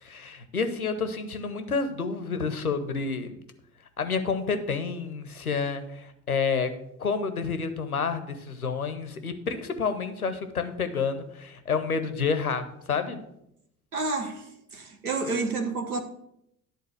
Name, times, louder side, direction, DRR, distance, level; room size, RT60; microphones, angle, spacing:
voice 1, 0.0-3.4 4.0-6.7 7.0-13.2, left 5 dB, 90° left, 0.7 m, -29 dB
voice 2, 13.9-14.4 14.7-16.0, right 3 dB, 85° right, 0.9 m, -29 dB
11.0 x 3.9 x 6.4 m
figure-of-eight pair, 50°, 42 cm